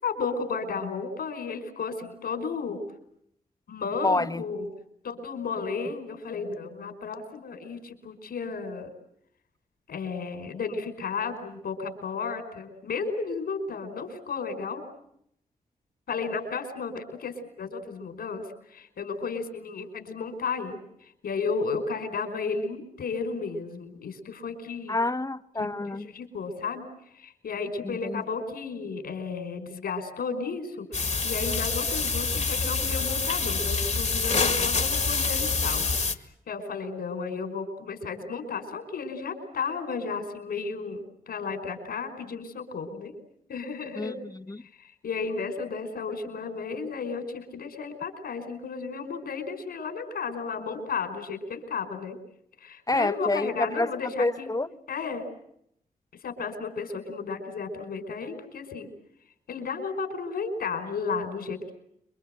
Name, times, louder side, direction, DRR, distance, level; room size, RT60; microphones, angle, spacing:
voice 1, 0.0-2.8 3.7-4.7 5.0-8.9 9.9-14.8 16.1-18.4 18.7-20.8 21.2-25.0 25.6-26.8 27.1-35.9 36.5-43.1 43.5-44.2 44.8-52.2 52.6-54.5 54.9-55.2 56.2-58.9 59.5-61.7, left 5 dB, 80° left, 5.4 m, -33 dB
voice 2, 4.0-4.4 24.9-26.1 27.8-28.2 44.0-44.6 52.9-53.9 54.2-54.7, left 2 dB, 25° left, 1.3 m, -28 dB
sound 1, 30.9-36.1, left 4 dB, 50° left, 2.2 m, -26 dB
28.0 x 23.5 x 8.0 m
supercardioid pair, 45°, 16 cm